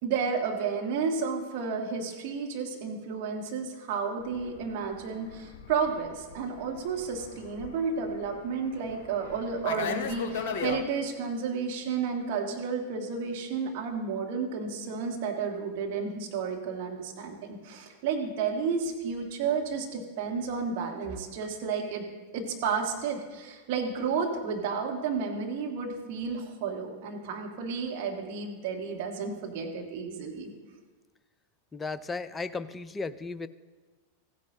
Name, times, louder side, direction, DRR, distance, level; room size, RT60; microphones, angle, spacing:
voice 1, 0.0-22.0 22.3-30.5, right 5 dB, 50° right, 1 dB, 1.6 m, -32 dB
Fixed-wing aircraft airplane, 4.3-10.8, left 7 dB, 50° left, 0.9 m, -38 dB
voice 2, 31.7-33.5, left 4 dB, 15° left, 13 dB, 0.4 m, -35 dB
15.5 x 9.3 x 2.9 m, 1.3 s
figure-of-eight pair, 90°, 0 cm